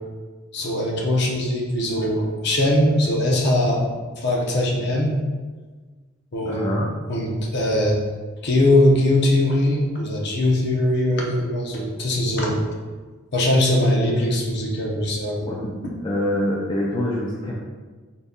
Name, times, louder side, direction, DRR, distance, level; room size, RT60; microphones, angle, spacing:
voice 1, 0.5-3.8 4.2-5.1 6.3-6.7 7.1-8.0 8.4-12.7 13.3-15.5 15.8-15.9, left 1 dB, 55° left, -1 dB, 0.7 m, -21 dB
voice 2, 6.4-6.9 15.5-15.8 16.0-17.5, left 1 dB, 20° left, -4 dB, 0.3 m, -25 dB
4.0 x 2.2 x 3.6 m, 1.4 s
head